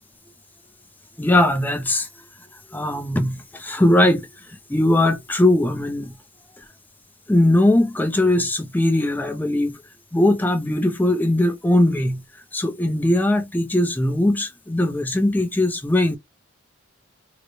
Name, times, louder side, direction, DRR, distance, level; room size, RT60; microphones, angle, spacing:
voice 1, 1.2-2.1 2.7-6.1 7.3-9.8 10.1-12.2 12.5-16.2, left 1 dB, 10° left, 0.4 m, -20 dB
3.8 x 2.1 x 3.0 m
head